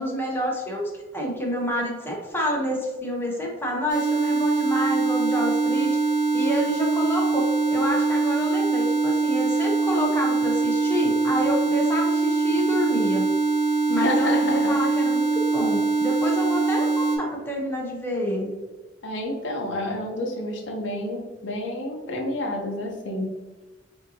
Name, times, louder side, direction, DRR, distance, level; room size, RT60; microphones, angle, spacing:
voice 1, 0.0-6.0 6.3-13.3 13.9-18.5, equal, 10° left, -2 dB, 0.8 m, -28 dB
sound 1, 3.9-17.2, right 3 dB, 85° right, 1.1 m, -23 dB
voice 2, 13.9-14.7 19.0-23.3, left 1 dB, 75° left, 1 dB, 0.8 m, -29 dB
5.1 x 2.8 x 2.8 m, 1.2 s
head